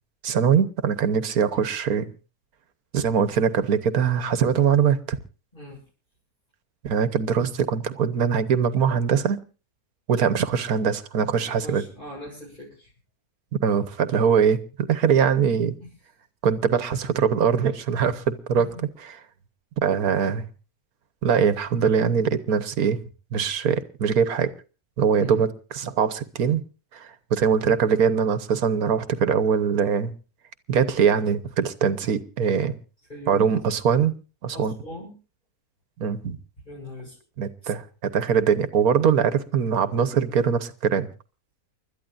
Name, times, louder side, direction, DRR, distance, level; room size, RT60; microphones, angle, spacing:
voice 1, 0.2-2.1 2.9-5.2 6.8-9.4 10.1-11.8 13.5-14.6 14.9-15.8 16.4-18.7 19.8-20.5 21.2-23.0 23.3-24.5 25.0-25.5 25.7-26.6 26.9-30.1 30.7-32.7 33.3-34.1 34.4-34.7 36.0-36.4 37.4-41.1, right 7 dB, 75° right, 12 dB, 1.5 m, -22 dB
voice 2, 11.4-12.9 15.8-15.9 18.6-18.8 25.2-25.5 33.1-33.5 34.5-35.1 36.6-37.2, left 1 dB, 30° left, -7 dB, 7.4 m, -40 dB
30.0 x 13.0 x 2.5 m, 0.35 s
omnidirectional pair, 1.6 m